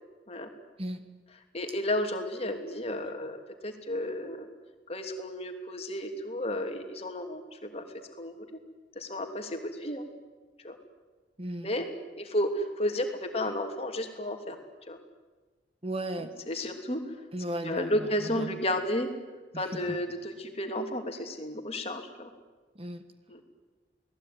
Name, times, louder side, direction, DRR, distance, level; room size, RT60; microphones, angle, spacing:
voice 1, 1.5-3.4 3.6-4.5 4.9-7.8 8.2-8.6 8.9-10.0 10.6-10.8 11.6-11.9 12.2-14.6 14.9-15.0 16.5-17.2 17.7-19.1 19.5-22.3 23.3-23.4, left 1 dB, 35° left, 5 dB, 2.9 m, -32 dB
voice 2, 11.4-11.7 15.8-16.3 17.3-18.6 19.5-20.0 22.7-23.1, right 1 dB, 30° right, 9 dB, 1.5 m, -36 dB
29.0 x 19.0 x 9.5 m, 1.3 s
head